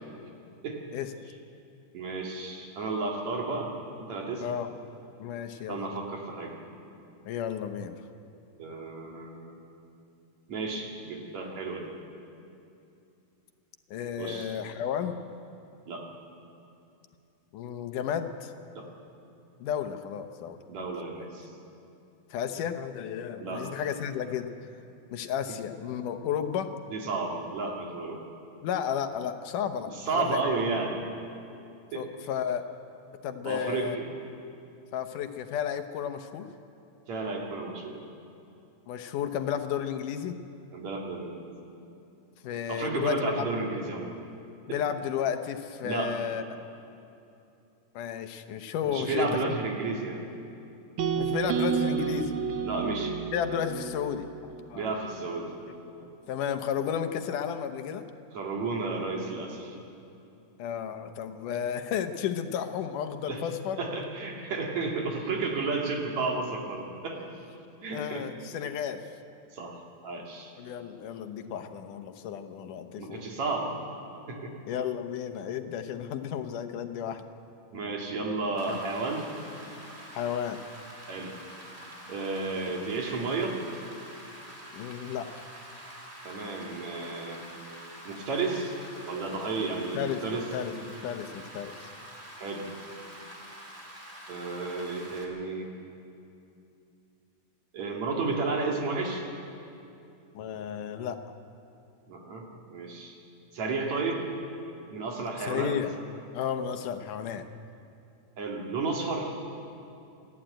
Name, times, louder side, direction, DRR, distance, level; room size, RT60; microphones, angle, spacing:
voice 1, 1.9-3.7 4.0-4.5 5.7-6.6 8.6-9.6 10.5-11.9 14.2-14.6 15.9-16.1 18.7-18.9 20.7-21.5 23.4-23.7 26.9-28.2 30.0-31.0 31.9-32.1 33.5-34.1 37.1-38.0 40.7-41.5 42.7-44.2 45.8-46.2 48.9-50.2 52.6-53.2 54.7-55.5 58.3-59.8 63.3-63.4 63.8-67.2 67.8-68.3 69.5-69.8 70.0-70.5 73.0-73.8 74.3-74.6 77.7-79.3 81.1-81.4 82.1-83.6 86.2-87.4 88.1-88.8 89.1-90.5 92.4-92.7 94.3-95.7 97.7-99.3 102.1-103.2 103.5-104.3 104.9-105.8 108.4-109.5, right 3 dB, 60° right, 0 dB, 3.6 m, -32 dB
voice 2, 5.2-5.8 7.3-8.0 13.9-15.2 17.5-18.5 19.6-20.9 21.2-21.3 22.3-24.5 25.1-26.8 28.6-30.6 31.9-32.7 33.2-34.0 34.9-36.5 38.9-40.4 42.4-43.3 44.7-46.4 47.9-49.6 51.2-52.3 53.3-54.9 55.7-55.9 56.3-58.0 60.6-63.8 67.9-69.1 70.6-73.2 74.7-77.2 78.7-78.8 80.1-80.6 84.7-85.3 89.9-91.9 100.3-101.2 105.4-105.9 106.3-107.5, left 8 dB, 80° left, 8 dB, 2.6 m, -33 dB
sound 1, 51.0-55.1, right 7 dB, 85° right, 1.1 m, -31 dB
Rain, 78.6-95.2, right 1 dB, 20° right, 2.9 m, -46 dB
27.5 x 12.5 x 9.0 m, 2.7 s
omnidirectional pair, 3.6 m